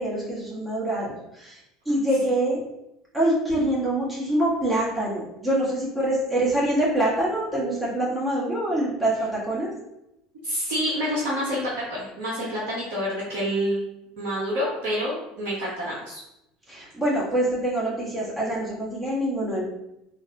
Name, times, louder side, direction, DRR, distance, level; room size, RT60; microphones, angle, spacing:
voice 1, 0.0-1.6 1.8-2.6 3.1-9.7 16.7-19.6, right 1 dB, 15° right, -7 dB, 1.4 m, -25 dB
voice 2, 10.4-13.8 14.2-16.2, equal, 60° right, -6 dB, 0.9 m, -28 dB
3.9 x 2.5 x 2.7 m, 0.85 s
figure-of-eight pair, 70°, 0 cm